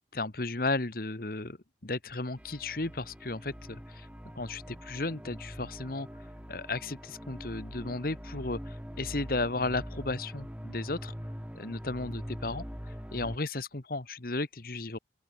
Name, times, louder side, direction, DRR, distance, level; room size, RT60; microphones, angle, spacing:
voice 1, 0.1-1.6 1.8-4.1 4.3-11.1 11.5-12.6 13.1-15.0, left 2 dB, 55° left, 1.5 m, -34 dB
sound 1, 2.4-13.4, equal, 5° right, 6.4 m, -43 dB
open air
head